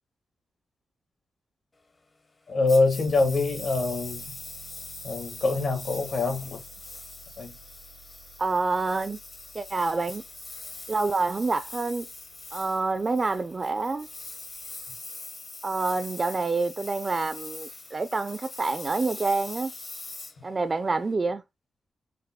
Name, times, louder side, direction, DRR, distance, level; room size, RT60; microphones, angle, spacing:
voice 1, 2.5-4.4 5.0-6.6 7.4-7.5, left 3 dB, 70° left, 1.5 m, -25 dB
Engine, 2.7-21.1, left 3 dB, 35° left, 0.7 m, -42 dB
sound 1, 3.1-14.9, right 7 dB, 90° right, 0.6 m, -53 dB
voice 2, 8.4-9.2 9.5-10.2 10.9-12.1 12.5-14.1 15.6-19.7 20.4-21.4, right 3 dB, 35° right, 0.3 m, -27 dB
5.1 x 2.1 x 2.8 m
cardioid pair, 70°, 0 cm